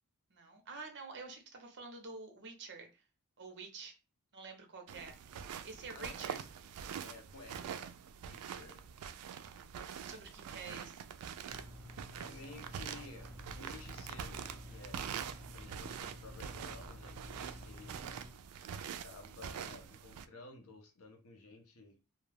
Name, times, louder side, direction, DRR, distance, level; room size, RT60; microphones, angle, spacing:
voice 1, 0.3-3.0 3.4-4.0 4.3-5.2 5.6-6.4 8.6-8.7 10.0-11.0, right 4 dB, 55° right, 0.7 m, -48 dB
sound 1, 4.9-20.3, right 8 dB, 80° right, 0.3 m, -45 dB
voice 2, 5.9-6.4 7.0-8.0 8.3-8.9 12.2-15.1 15.5-18.0 18.7-22.0, left 3 dB, 70° left, 0.7 m, -54 dB
sound 2, 11.5-18.3, left 1 dB, 10° right, 0.7 m, -51 dB
2.3 x 2.2 x 3.3 m
head